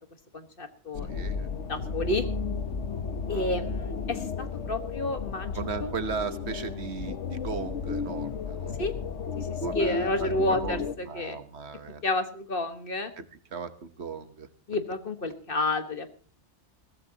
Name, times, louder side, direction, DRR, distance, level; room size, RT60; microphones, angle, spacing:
voice 1, 0.3-1.1 1.7-2.2 3.3-5.9 8.8-8.9 9.4-9.5 9.7-11.4 12.0-13.1 14.7-16.1, left 2 dB, 50° left, 8 dB, 1.6 m, -30 dB
sound 1, 0.9-11.0, left 4 dB, 80° left, 1.4 m, -33 dB
voice 2, 1.1-1.5 3.3-3.7 5.5-8.8 9.6-12.0 13.2-13.3 13.5-14.5, right 6 dB, 65° right, 11 dB, 1.4 m, -37 dB
21.5 x 16.0 x 2.9 m, 0.41 s
omnidirectional pair, 1.2 m